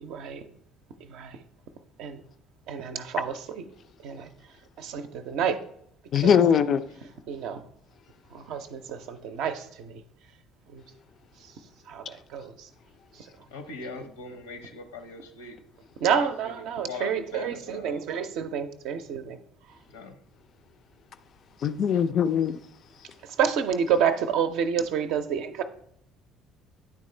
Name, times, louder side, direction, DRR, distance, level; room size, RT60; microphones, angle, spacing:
voice 1, 0.0-0.4 1.1-1.3 2.0-2.2 2.7-3.6 4.0-4.3 4.8-5.6 6.2-6.4 7.3-7.6 8.3-10.0 10.7-10.8 11.9-12.0 12.3-12.5 16.0-19.4 23.4-25.6, right 7 dB, 60° right, 0.5 m, -28 dB
voice 2, 6.1-6.8 21.6-22.6, left 8 dB, 45° left, 0.3 m, -21 dB
voice 3, 13.5-15.6 16.1-18.0 19.9-20.1, left 4 dB, 75° left, 0.7 m, -41 dB
9.5 x 3.6 x 3.1 m
figure-of-eight pair, 55°, 0 cm